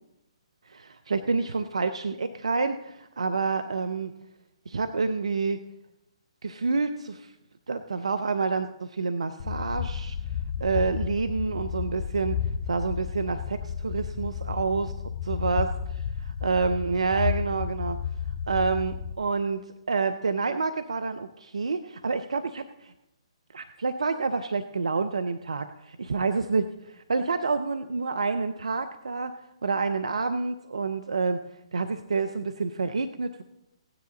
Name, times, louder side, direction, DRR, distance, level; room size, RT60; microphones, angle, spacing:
voice 1, 0.6-4.1 4.7-5.6 6.4-7.3 7.7-10.2 10.6-14.9 15.2-15.7 16.2-18.0 18.5-22.9 23.5-25.6 26.1-31.4 31.7-33.4, right 4 dB, 75° right, 9 dB, 0.5 m, -28 dB
sound 1, 9.4-19.2, left 7 dB, 40° left, 0.9 m, -32 dB
16.0 x 9.8 x 3.9 m, 0.91 s
figure-of-eight pair, 130°, 3 cm